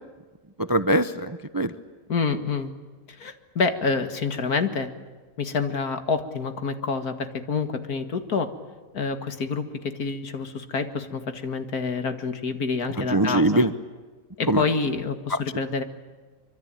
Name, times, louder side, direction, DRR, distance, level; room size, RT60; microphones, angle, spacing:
voice 1, 0.6-1.7 13.0-13.7 14.5-14.6 15.3-15.4, right 1 dB, 20° right, 12 dB, 0.6 m, -22 dB
voice 2, 2.1-2.7 3.2-4.9 5.4-8.5 8.9-13.7 14.4-15.8, left 4 dB, 80° left, 8 dB, 2.3 m, -27 dB
25.0 x 25.0 x 9.0 m, 1.3 s
omnidirectional pair, 1.6 m